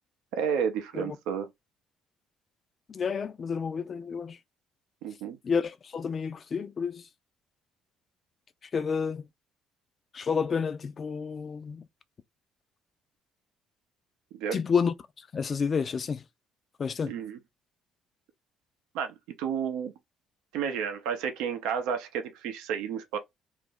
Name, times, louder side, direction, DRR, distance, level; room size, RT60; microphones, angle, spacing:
voice 1, 0.3-1.5 5.0-5.4 14.3-14.6 17.1-17.4 18.9-19.9 20.5-23.2, right 7 dB, 80° right, 0.5 m, -31 dB
voice 2, 2.9-4.4 5.4-7.1 8.7-9.2 10.1-11.9 14.5-16.2 16.8-17.1, left 6 dB, 45° left, 0.4 m, -30 dB
2.5 x 2.0 x 3.6 m
supercardioid pair, 65°, 0 cm